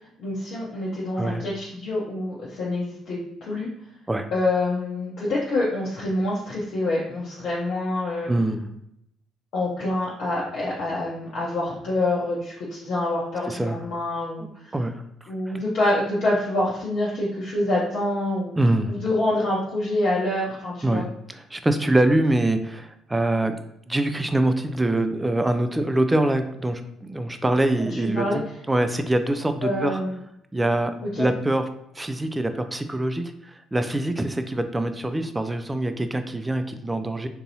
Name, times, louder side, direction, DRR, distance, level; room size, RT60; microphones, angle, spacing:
voice 1, 0.2-3.7 4.3-8.3 9.5-14.7 15.3-18.5 18.9-21.0 27.8-28.4 29.6-30.2 31.0-31.3, left 1 dB, 60° left, -6 dB, 0.7 m, -26 dB
voice 2, 8.3-8.7 13.5-13.8 14.4-14.5 14.7-14.9 15.2-15.6 18.6-18.9 20.8-21.0 21.3-23.5 23.9-30.0 30.5-31.7 32.0-33.2 33.7-37.3, right 1 dB, 15° right, 8 dB, 0.3 m, -24 dB
3.8 x 2.6 x 2.7 m, 0.76 s
hypercardioid pair, 50°, 0 cm